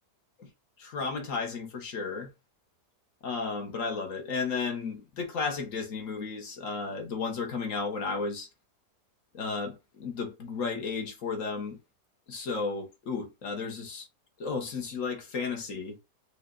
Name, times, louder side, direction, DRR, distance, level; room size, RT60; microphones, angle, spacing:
voice 1, 0.8-2.3 3.2-8.5 9.3-11.8 12.3-14.1 14.4-16.0, left 4 dB, 55° left, 1.6 m, -33 dB
5.3 x 2.5 x 4.0 m
omnidirectional pair, 1.7 m